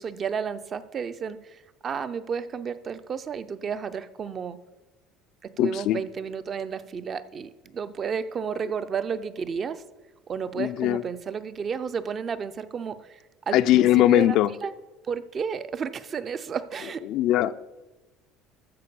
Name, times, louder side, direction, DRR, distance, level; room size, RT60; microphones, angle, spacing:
voice 1, 0.0-4.6 5.4-9.8 10.3-14.4 14.6-14.7 15.0-17.1, right 6 dB, 30° right, 0.5 m, -32 dB
voice 2, 5.6-6.0 10.6-11.0 13.5-14.5 17.1-17.6, left 13 dB, 60° left, 0.4 m, -20 dB
13.5 x 4.6 x 6.9 m
cardioid pair, 145°, 0 cm